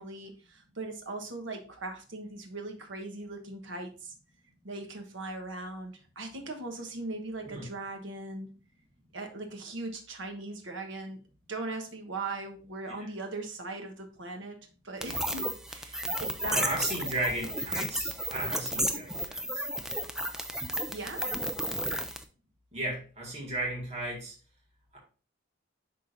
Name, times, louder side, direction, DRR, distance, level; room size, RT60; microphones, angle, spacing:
voice 1, 0.0-4.1 4.6-8.5 9.1-11.2 11.5-14.6 14.8-16.7 20.9-21.3, right 2 dB, 70° right, 3 dB, 1.2 m, -39 dB
sound 1, 15.0-22.2, right 1 dB, 5° right, 0.4 m, -33 dB
voice 2, 16.5-19.6 22.7-24.3 24.9-25.0, right 1 dB, 30° right, -4 dB, 1.9 m, -35 dB
10.5 x 3.8 x 2.6 m, 0.38 s
head